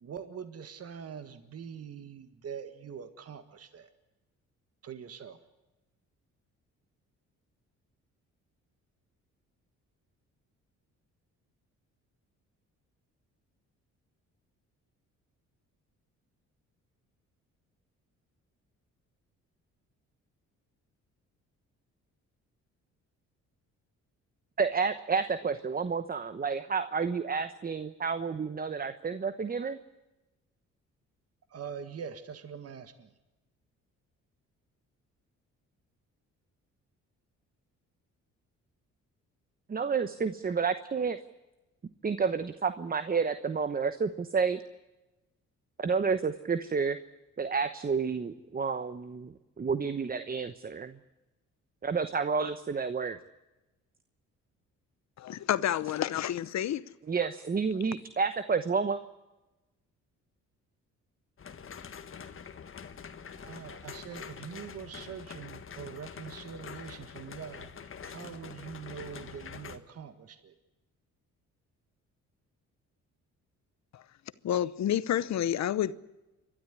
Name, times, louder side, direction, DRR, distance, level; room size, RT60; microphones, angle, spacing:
voice 1, 0.0-3.9 4.8-5.4 31.5-33.1 63.4-67.7 68.0-70.5, right 7 dB, 55° right, 1.8 m, -43 dB
voice 2, 24.6-29.8 39.7-41.2 42.0-44.6 45.8-47.0 47.4-51.0 51.8-53.2 57.1-59.0, right 5 dB, 30° right, 1.0 m, -30 dB
voice 3, 55.2-56.8 73.9-74.0 74.4-75.9, left 11 dB, 65° left, 0.9 m, -29 dB
sound 1, 61.4-69.8, left 6 dB, 45° left, 1.7 m, -45 dB
29.0 x 12.5 x 9.7 m
cardioid pair, 90°, 30 cm